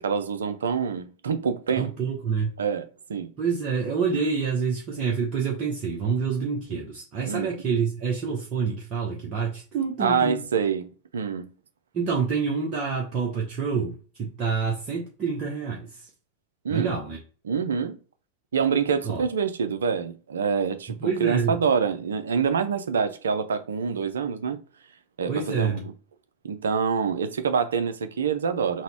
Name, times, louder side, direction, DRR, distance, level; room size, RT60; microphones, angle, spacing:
voice 1, 0.0-1.9 2.6-3.3 7.2-7.5 10.0-11.5 16.6-17.0 17.4-18.0 18.5-24.6 25.2-25.8 26.4-28.8, right 6 dB, 65° right, 0.5 m, -26 dB
voice 2, 1.8-2.5 3.4-10.4 11.9-16.1 16.7-17.2 19.0-19.2 21.0-21.6 25.3-25.9, right 5 dB, 35° right, 0.8 m, -27 dB
3.9 x 2.2 x 4.5 m
figure-of-eight pair, 90°, 0 cm